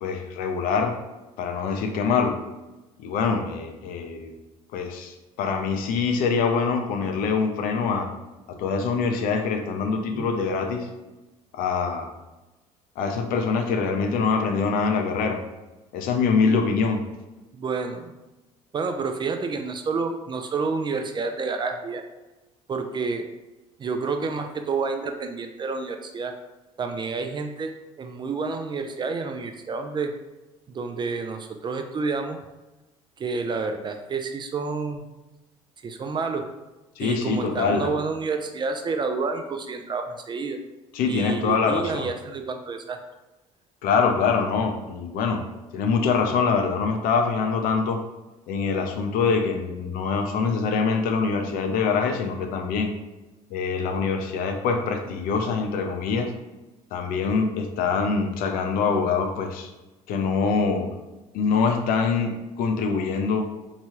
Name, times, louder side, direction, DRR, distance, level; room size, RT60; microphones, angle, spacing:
voice 1, 0.0-1.0 1.4-2.4 3.0-4.3 4.7-8.1 8.5-10.9 11.5-12.1 13.0-15.4 15.9-17.0 37.0-37.9 40.9-42.1 43.8-45.4 45.7-48.0 48.5-52.9 53.5-56.3 56.9-59.7 60.1-60.9 61.3-63.4, left 5 dB, 65° left, 4 dB, 0.5 m, -24 dB
voice 2, 17.5-18.1 18.7-22.0 22.7-23.2 23.8-26.3 26.8-30.1 30.7-32.4 33.2-35.0 35.8-36.5 37.0-40.6 41.1-43.0, right 4 dB, 30° right, 6 dB, 0.3 m, -29 dB
2.9 x 2.2 x 3.0 m, 1.1 s
hypercardioid pair, 75°, 16 cm